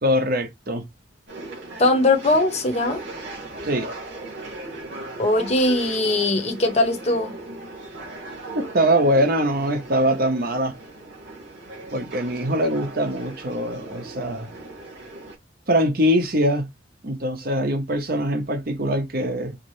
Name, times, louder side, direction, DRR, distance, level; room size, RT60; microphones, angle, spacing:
voice 1, 0.0-0.8 3.6-3.9 8.5-10.7 11.9-14.5 15.7-16.7 17.0-19.6, equal, 50° right, 0.9 m, -22 dB
sound 1, 1.3-15.4, right 2 dB, 65° right, 2.3 m, -38 dB
voice 2, 1.8-3.0 5.2-7.3, left 2 dB, 35° left, 0.8 m, -20 dB
4.9 x 2.0 x 3.1 m
head